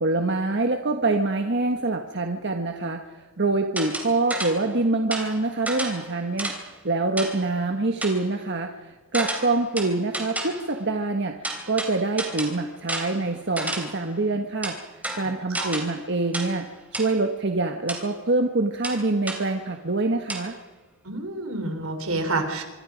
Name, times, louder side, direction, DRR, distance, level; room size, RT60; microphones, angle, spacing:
voice 1, 0.0-20.5, right 2 dB, 55° right, 4 dB, 1.4 m, -25 dB
sound 1, 3.8-4.7 5.1-6.7 7.2-7.5 8.0-8.3 9.1-10.7 11.4-14.1 14.6-16.0 16.3-16.7 16.9-17.2 17.9-18.1 18.8-19.5 20.3-20.5, right 1 dB, 5° right, 3.4 m, -32 dB
voice 2, 21.0-22.6, right 2 dB, 80° right, 6 dB, 4.0 m, -28 dB
26.0 x 23.5 x 5.1 m, 1.2 s
head